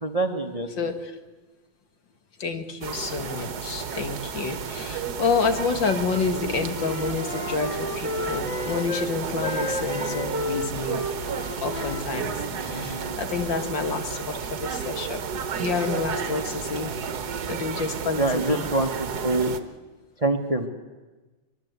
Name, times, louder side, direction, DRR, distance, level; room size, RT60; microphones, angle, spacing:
voice 1, 0.0-0.7 18.2-18.9 19.2-19.6 20.2-20.7, right 2 dB, 20° right, 6 dB, 1.2 m, -24 dB
voice 2, 0.8-1.2 2.4-11.0 11.6-15.2 15.6-16.9 17.5-18.7, left 4 dB, 65° left, 7 dB, 2.5 m, -29 dB
sound 1, 2.8-19.6, right 6 dB, 55° right, 1.6 m, -32 dB
Wind instrument woodwind instrument, 6.0-9.1 9.4-13.2, left 1 dB, 20° left, 1.0 m, -33 dB
23.5 x 22.5 x 8.2 m, 1.2 s
omnidirectional pair, 2.2 m